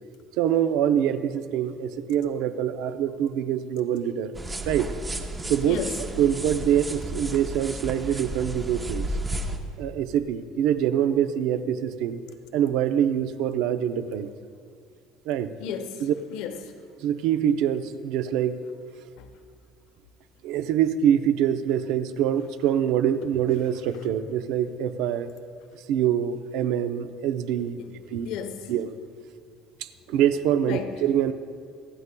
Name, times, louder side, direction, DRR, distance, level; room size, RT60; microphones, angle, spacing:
voice 1, 0.4-4.3 4.7-4.9 5.5-9.1 9.8-12.2 12.5-14.3 15.3-15.5 16.0-16.1 17.0-18.6 20.4-25.3 25.9-27.8 28.1-28.3 28.7-29.0 29.8-31.3, right 9 dB, 70° right, 10 dB, 0.6 m, -25 dB
sound 1, 4.3-9.6, right 1 dB, 10° right, 0.6 m, -33 dB
voice 2, 5.7-6.0 15.6-16.0 16.3-16.7 19.2-19.3 27.8-27.9 28.3-28.7 30.7-30.9, left 8 dB, 75° left, 7 dB, 0.9 m, -34 dB
27.0 x 9.6 x 2.2 m, 2.2 s
cardioid pair, 165°, 0 cm